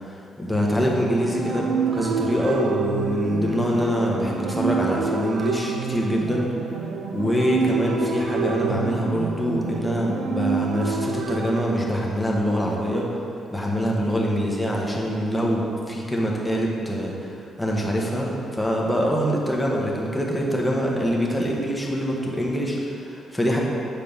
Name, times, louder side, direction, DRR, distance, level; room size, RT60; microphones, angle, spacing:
voice 1, 0.0-6.5 7.1-13.0 13.5-23.6, equal, 5° left, -3 dB, 1.3 m, -24 dB
sound 1, 0.7-12.5, right 6 dB, 80° right, 0.5 m, -28 dB
7.1 x 4.8 x 5.5 m, 2.7 s
cardioid pair, 100°, 0 cm